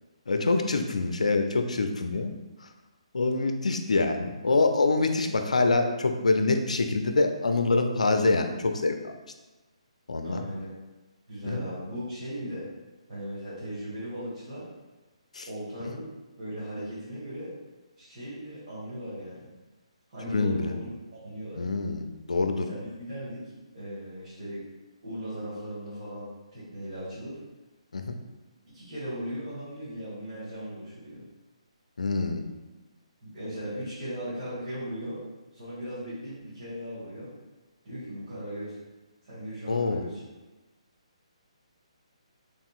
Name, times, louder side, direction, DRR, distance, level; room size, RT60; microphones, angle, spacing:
voice 1, 0.3-2.3 2.6-2.7 3.1-9.1 10.1-10.4 11.4-11.6 15.3-15.5 15.8-16.0 20.3-20.8 21.6-22.7 27.9-28.2 32.0-32.4 39.7-40.1, left 3 dB, 85° left, 6 dB, 0.3 m, -25 dB
voice 2, 10.2-10.7 11.3-12.7 13.1-14.7 15.5-16.1 16.4-17.6 18.0-19.5 20.1-21.7 22.6-24.6 25.0-27.4 28.6-31.2 33.2-35.2 35.5-37.3 37.8-38.8 39.2-40.2, equal, 55° right, -11 dB, 1.5 m, -38 dB
3.5 x 2.6 x 2.4 m, 1.1 s
hypercardioid pair, 145°, 4 cm